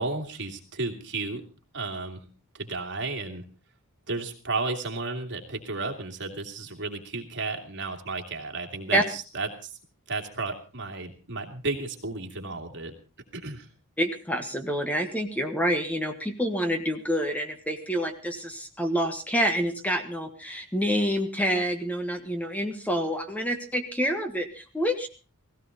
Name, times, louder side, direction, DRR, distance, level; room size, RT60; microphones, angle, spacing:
voice 1, 0.0-1.4 1.7-2.2 2.5-3.4 4.1-9.7 10.1-12.9 13.3-13.7, right 3 dB, 55° right, 4 dB, 2.7 m, -33 dB
voice 2, 14.0-25.1, equal, 5° left, 6 dB, 1.4 m, -27 dB
17.0 x 16.5 x 4.1 m, 0.34 s
head